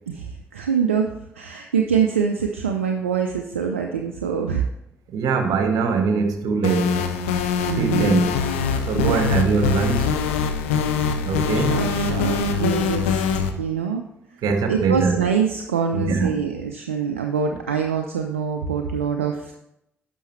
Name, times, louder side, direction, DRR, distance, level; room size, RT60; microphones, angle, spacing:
voice 1, 0.1-4.7 7.6-8.2 8.9-9.2 11.6-13.2 13.6-14.1 14.3-19.5, right 6 dB, 85° right, 0.4 m, -24 dB
voice 2, 5.1-7.3 7.8-8.3 8.9-10.1 11.2-11.8 14.4-15.2 15.9-16.3, right 5 dB, 65° right, 1.0 m, -22 dB
sound 1, 6.6-13.5, left 6 dB, 80° left, 0.5 m, -23 dB
9.9 x 6.1 x 3.1 m
figure-of-eight pair, 40°, 7 cm